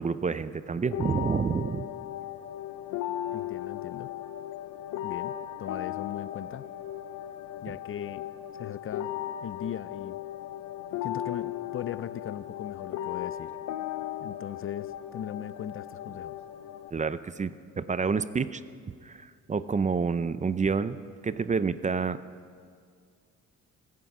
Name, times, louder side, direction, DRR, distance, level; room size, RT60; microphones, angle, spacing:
voice 1, 0.0-1.9 16.9-18.6 19.0-21.0 21.2-22.2, right 5 dB, 25° right, 14 dB, 0.5 m, -28 dB
sound 1, 0.9-16.9, left 12 dB, 90° left, 0.7 m, -37 dB
voice 2, 3.3-4.1 5.0-6.7 7.6-8.3 8.5-9.1 9.4-10.2 11.0-13.5 14.2-16.4, left 10 dB, 45° left, 16 dB, 0.5 m, -39 dB
24.5 x 9.5 x 6.0 m, 2.1 s
cardioid pair, 90°, 30 cm